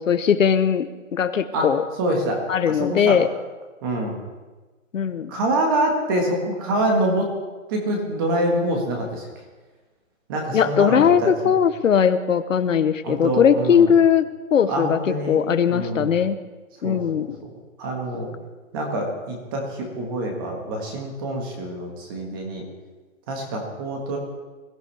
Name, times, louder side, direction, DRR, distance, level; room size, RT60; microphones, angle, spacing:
voice 1, 0.0-1.8 2.5-3.3 4.9-5.3 10.5-14.2 14.5-15.0 15.3-16.4 16.8-17.4, left 7 dB, 70° left, 12 dB, 0.9 m, -19 dB
voice 2, 2.0-2.4 2.7-3.2 3.8-4.2 5.3-7.3 7.7-9.3 10.3-11.5 13.0-13.9 14.7-15.4 15.7-16.2 16.8-17.3 17.8-18.3 18.7-22.6 23.3-24.2, right 1 dB, 15° right, 2 dB, 1.6 m, -25 dB
21.5 x 14.5 x 3.4 m, 1.3 s
hypercardioid pair, 170°, 41 cm